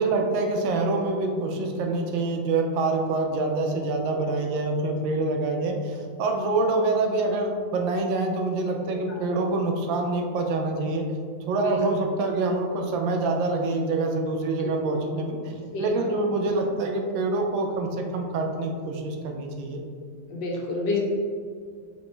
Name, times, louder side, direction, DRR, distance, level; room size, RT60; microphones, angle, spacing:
voice 1, 0.0-11.0 11.5-19.8, right 3 dB, 85° right, 3 dB, 1.4 m, -26 dB
voice 2, 8.8-9.2 11.6-11.8 14.6-14.7 15.7-16.1 20.3-21.0, left 3 dB, 75° left, -2 dB, 1.5 m, -29 dB
5.0 x 3.0 x 3.3 m, 2.1 s
omnidirectional pair, 2.0 m